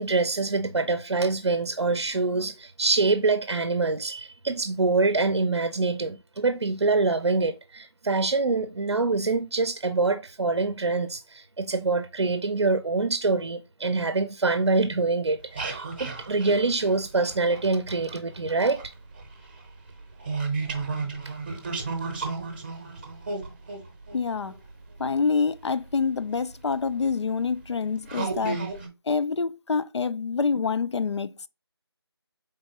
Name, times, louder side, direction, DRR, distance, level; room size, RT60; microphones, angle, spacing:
voice 1, 0.0-18.8, right 3 dB, 80° right, 0.6 m, -25 dB
sound 1, 15.4-18.2 18.5-25.3 26.2-26.3 26.9-27.1 27.6-27.7 28.1-28.9, right 4 dB, 25° right, 0.7 m, -33 dB
voice 2, 24.1-24.5 25.0-28.6 29.1-31.3, left 5 dB, 80° left, 0.4 m, -26 dB
4.6 x 3.7 x 2.8 m
figure-of-eight pair, 165°, 14 cm